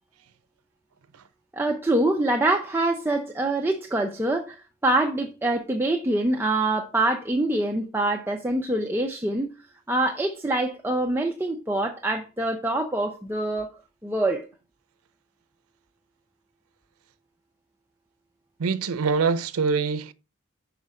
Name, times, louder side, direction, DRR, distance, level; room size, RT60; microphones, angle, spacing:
voice 1, 1.5-9.5 9.9-13.7 14.0-14.5, right 2 dB, 10° right, 0.6 m, -25 dB
voice 2, 18.6-20.1, right 5 dB, 90° right, 0.5 m, -24 dB
5.9 x 5.0 x 4.2 m
head